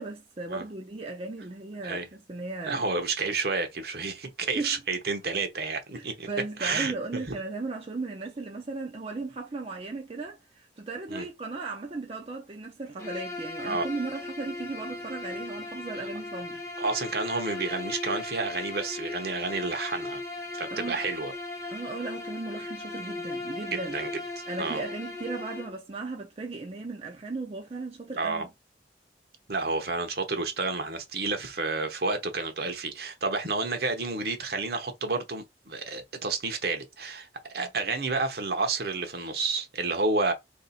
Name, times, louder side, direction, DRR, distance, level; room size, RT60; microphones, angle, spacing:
voice 1, 0.0-2.9 4.6-4.7 5.9-16.6 20.7-21.0 21.7-24.0 24.5-28.5 37.6-37.7, right 3 dB, 35° right, 0.5 m, -36 dB
voice 2, 2.7-6.3 6.6-7.3 11.1-11.3 13.6-13.9 16.8-20.2 20.5-21.3 23.7-24.1 24.6-24.8 28.2-28.4 29.5-40.3, right 3 dB, 60° right, 0.9 m, -30 dB
Bowed string instrument, 13.0-25.8, left 2 dB, 15° left, 0.7 m, -37 dB
2.9 x 2.8 x 4.1 m
head